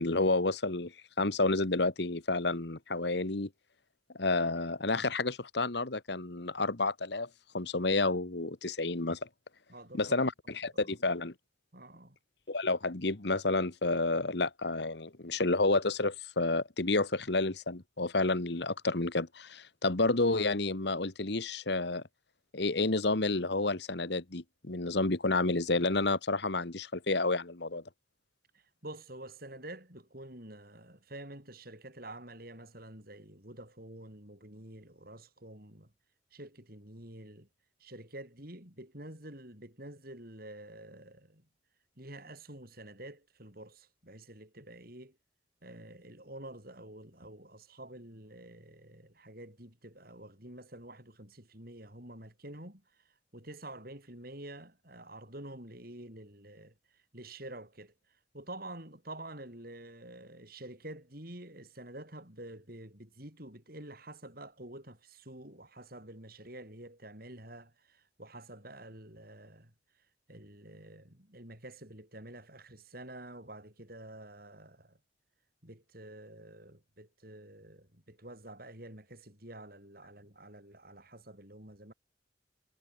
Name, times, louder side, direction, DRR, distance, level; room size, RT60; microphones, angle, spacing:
voice 1, 0.0-3.5 4.2-7.3 7.5-9.3 9.9-11.3 12.5-22.0 22.5-27.8, left 2 dB, 60° left, 1.5 m, -30 dB
voice 2, 9.7-10.2 10.6-11.0 11.7-12.2 28.5-35.9 36.3-37.5 37.8-41.4 42.0-45.2 45.6-52.8 53.3-56.7 57.1-57.9 58.3-69.7 70.3-75.0 75.6-81.9, right 1 dB, 50° right, 6.9 m, -48 dB
head